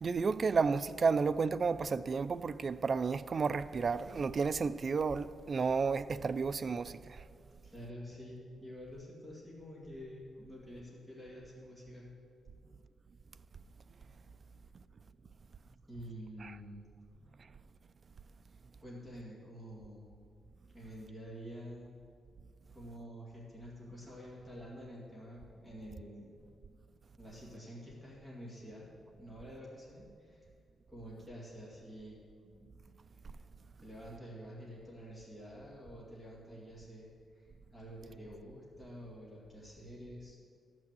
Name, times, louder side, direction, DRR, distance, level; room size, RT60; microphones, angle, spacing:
voice 1, 0.0-7.2 16.4-16.5, right 5 dB, 35° right, 0.3 m, -32 dB
voice 2, 7.6-12.1 15.9-16.8 18.4-20.1 20.7-21.9 22.7-26.3 27.2-28.9 29.2-30.5 30.9-32.2 32.4-32.7 33.8-37.1 37.3-40.4, equal, 5° left, 2.4 m, -48 dB
14.0 x 6.1 x 7.6 m
wide cardioid pair, 170°, 0 cm